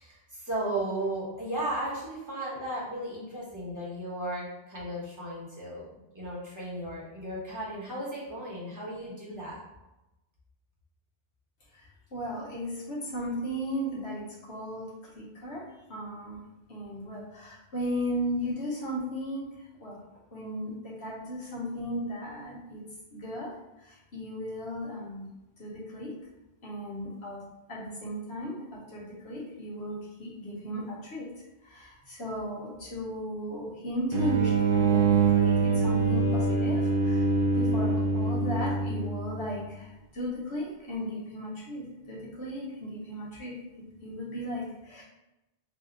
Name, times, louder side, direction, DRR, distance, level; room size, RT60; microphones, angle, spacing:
voice 1, 0.0-9.6, right 1 dB, 15° right, -7 dB, 1.1 m, -35 dB
voice 2, 11.7-14.9 15.1-16.4 16.7-19.5 19.8-20.0 20.3-20.7 21.0-22.8 23.1-25.3 25.6-26.1 26.6-27.4 27.7-31.3 31.6-35.1 35.3-37.3 37.5-43.6 44.0-45.0, equal, 70° left, -6 dB, 1.5 m, -36 dB
sound 1, 34.1-39.5, right 4 dB, 85° right, 1.0 m, -25 dB
3.4 x 2.5 x 3.9 m, 0.97 s
omnidirectional pair, 1.1 m